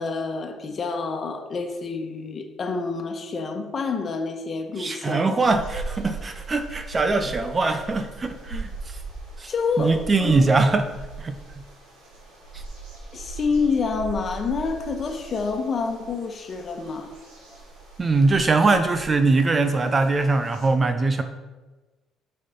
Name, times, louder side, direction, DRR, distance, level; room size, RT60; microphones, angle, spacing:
voice 1, 0.0-5.4 9.5-10.5 13.1-17.1, left 4 dB, 45° left, 5 dB, 1.4 m, -28 dB
voice 2, 4.8-8.9 9.4-9.5 9.8-10.9 11.2-11.4 18.0-21.2, right 3 dB, 30° right, 8 dB, 0.8 m, -22 dB
sound 1, 5.4-20.7, right 3 dB, 85° right, 3.0 m, -40 dB
6.4 x 5.7 x 6.8 m, 1.2 s
supercardioid pair, 80°, 0 cm